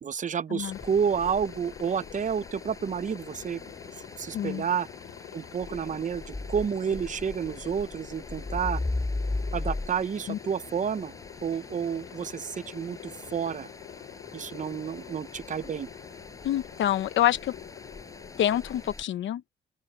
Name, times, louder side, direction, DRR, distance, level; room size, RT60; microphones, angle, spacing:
voice 1, 0.0-3.7 4.2-4.9 5.3-8.8 9.5-11.1 11.4-13.7 14.3-15.9, right 7 dB, 40° right, 0.8 m, -30 dB
Aircraft, 0.6-18.8, left 14 dB, 85° left, 4.7 m, -47 dB
sound 1, 0.7-19.0, left 2 dB, 15° left, 7.6 m, -39 dB
voice 2, 4.3-4.6 10.3-10.4 16.4-17.5 18.4-19.6, left 12 dB, 70° left, 1.0 m, -27 dB
open air
cardioid pair, 90°, 20 cm